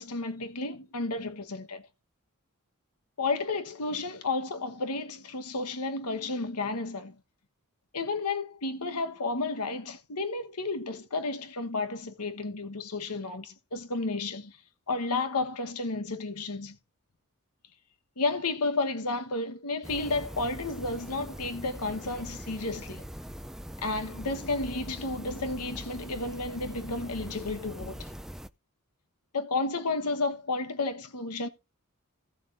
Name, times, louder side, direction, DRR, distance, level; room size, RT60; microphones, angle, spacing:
voice 1, 0.0-1.8 3.2-7.2 7.9-14.6 14.9-16.8 18.2-23.0 23.8-28.1 29.3-31.5, left 3 dB, 90° left, 1.2 m, -32 dB
sound 1, 19.8-28.5, equal, ahead, 0.4 m, -42 dB
16.5 x 7.4 x 2.6 m
head